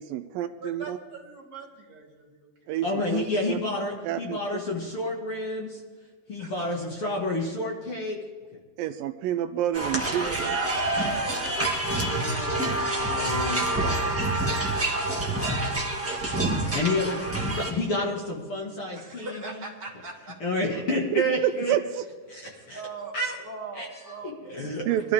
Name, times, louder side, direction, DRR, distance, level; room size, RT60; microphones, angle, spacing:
voice 1, 0.0-1.0 2.7-3.6 4.1-4.4 8.8-10.6 21.1-22.0 24.9-25.1, right 11 dB, 80° right, 9 dB, 2.3 m, -28 dB
voice 2, 0.6-2.5 2.7-2.8 6.4-6.9 11.9-12.2 13.7-15.4 18.9-20.4 22.7-23.2 23.4-24.3 24.9-25.0, right 3 dB, 30° right, -2 dB, 2.6 m, -42 dB
voice 3, 2.8-5.8 6.3-8.2 12.0-13.6 16.7-19.6 20.4-21.7 22.3-22.8 23.1-23.4 23.7-23.9 24.2-24.9, left 1 dB, 45° left, -2 dB, 2.3 m, -30 dB
sound 1, 9.7-17.7, right 2 dB, 10° right, 0.6 m, -27 dB
23.0 x 13.5 x 3.6 m, 1.4 s
omnidirectional pair, 4.2 m